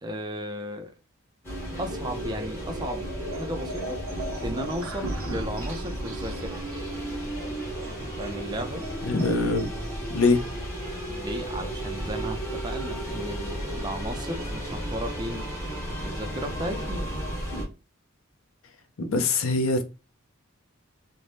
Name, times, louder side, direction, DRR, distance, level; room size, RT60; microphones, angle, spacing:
voice 1, 0.0-0.9 1.8-4.0 4.4-6.6 8.2-8.9 11.1-15.5 16.0-17.0, equal, 20° right, 0.4 m, -35 dB
sound 1, 1.4-17.6, right 1 dB, 10° left, 0.9 m, -34 dB
sound 2, 1.9-10.6, equal, 80° right, 0.6 m, -41 dB
voice 2, 9.0-9.7 10.1-10.4 19.0-19.8, left 3 dB, 70° left, 0.5 m, -23 dB
2.7 x 2.1 x 3.2 m
head